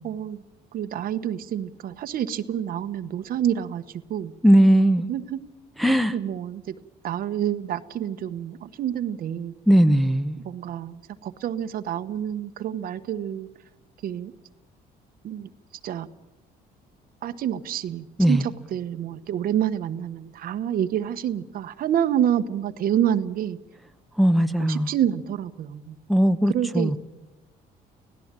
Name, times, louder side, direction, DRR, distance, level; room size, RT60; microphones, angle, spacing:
voice 1, 0.0-0.4 0.7-3.8 4.1-4.3 5.1-5.4 6.1-6.8 7.0-9.5 10.4-13.5 14.0-14.3 15.2-15.5 15.8-16.1 17.2-23.6 24.6-26.0 26.5-27.0, right 10 dB, 60° right, 11 dB, 1.1 m, -28 dB
voice 2, 4.4-5.1 5.8-6.1 9.7-10.4 18.2-18.4 24.2-24.9 26.1-27.0, equal, ahead, 7 dB, 1.0 m, -18 dB
25.0 x 17.0 x 7.5 m, 1.0 s
cardioid pair, 110°, 17 cm